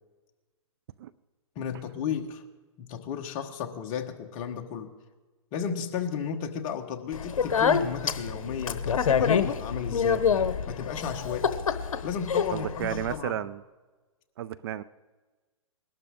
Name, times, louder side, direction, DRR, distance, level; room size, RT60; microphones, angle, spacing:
voice 1, 1.5-2.4 2.8-4.9 5.5-10.3 10.7-11.5 12.0-13.4, left 7 dB, 30° left, 4 dB, 1.3 m, -34 dB
Speech, 7.1-13.2, left 7 dB, 75° left, 1.0 m, -27 dB
voice 2, 12.5-13.6 14.4-14.8, right 11 dB, 45° right, 17 dB, 0.4 m, -33 dB
21.0 x 12.0 x 3.7 m, 1.3 s
hypercardioid pair, 140°, 18 cm